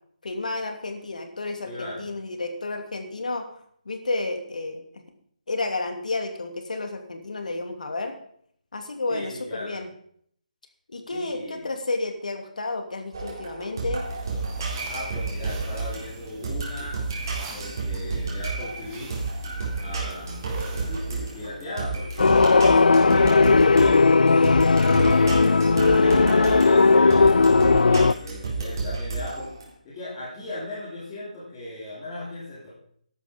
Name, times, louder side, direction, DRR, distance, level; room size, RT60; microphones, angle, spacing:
voice 1, 0.2-3.5 3.8-5.0 5.5-8.1 8.7-9.9 10.9-14.0 23.4-23.7, left 2 dB, 65° left, 6 dB, 2.9 m, -31 dB
voice 2, 1.6-2.1 9.1-9.8 11.1-11.7 14.9-17.1 17.5-19.1 19.8-22.4 22.9-24.1 24.9-29.5 29.8-32.7, left 1 dB, 15° left, -11 dB, 3.6 m, -37 dB
sound 1, 13.1-29.6, right 3 dB, 30° right, 4.1 m, -31 dB
sound 2, 14.0-21.5, right 4 dB, 10° right, 1.3 m, -44 dB
sound 3, 22.2-28.1, left 4 dB, 85° left, 0.5 m, -17 dB
13.5 x 11.5 x 5.3 m, 0.64 s
hypercardioid pair, 180°, 4 cm